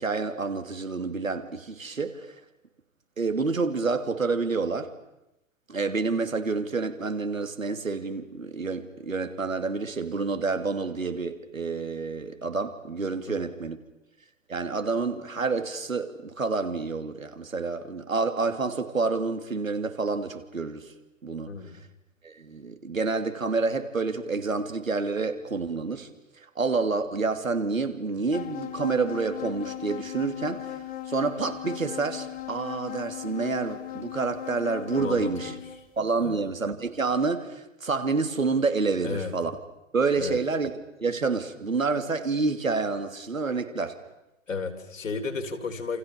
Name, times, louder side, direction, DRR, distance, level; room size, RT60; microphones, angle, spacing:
voice 1, 0.0-2.3 3.2-4.9 5.7-13.8 14.5-20.9 21.2-21.5 22.2-26.1 26.5-30.7 31.1-35.5 36.0-39.6 39.9-44.0, right 4 dB, 80° right, 3.1 m, -28 dB
voice 2, 21.5-21.8 35.0-35.6 36.2-36.5 39.0-39.3 40.2-40.4 44.5-46.0, left 4 dB, 70° left, 4.1 m, -33 dB
sound 1, 28.3-35.8, left 13 dB, 20° left, 2.3 m, -38 dB
28.5 x 28.5 x 6.9 m
figure-of-eight pair, 110°, 40 cm